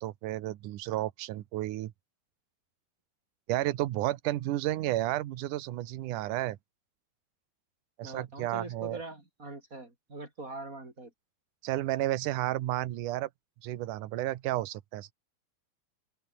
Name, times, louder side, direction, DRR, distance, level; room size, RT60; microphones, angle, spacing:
voice 1, 0.0-1.9 3.5-6.6 8.0-9.0 11.6-13.3 13.6-15.1, right 15 dB, 65° right, 2.3 m, -32 dB
voice 2, 8.0-11.1, right 2 dB, 20° right, 5.1 m, -43 dB
open air
omnidirectional pair, 4.5 m